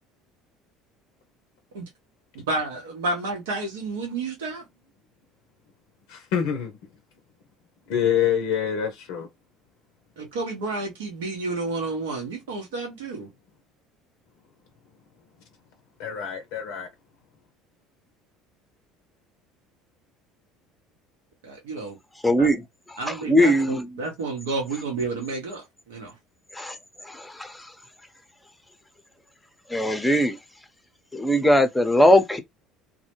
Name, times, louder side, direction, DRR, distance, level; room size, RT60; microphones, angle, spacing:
voice 1, 2.5-4.6 10.2-13.3 21.4-22.0 22.4-22.5 23.0-26.1, right 3 dB, 80° right, 0.8 m, -30 dB
voice 2, 6.1-6.7 7.9-9.3 16.0-16.9, left 8 dB, 70° left, 0.5 m, -26 dB
voice 3, 22.2-22.6 23.1-23.9 26.6-26.7 27.1-27.5 29.7-30.4 31.1-32.4, equal, 10° left, 0.6 m, -20 dB
2.1 x 2.0 x 2.9 m
hypercardioid pair, 75°, 0 cm